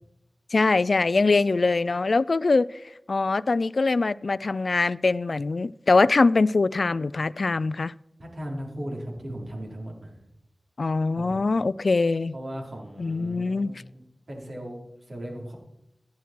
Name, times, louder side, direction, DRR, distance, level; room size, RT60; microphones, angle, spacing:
voice 1, 0.5-2.7 3.1-7.9 10.8-12.3 13.0-13.7, left 3 dB, 75° left, 0.4 m, -23 dB
voice 2, 8.2-10.2 11.1-11.4 12.3-14.8 15.1-15.6, equal, 75° right, 4.3 m, -37 dB
13.5 x 11.5 x 4.6 m
wide cardioid pair, 45°, 0 cm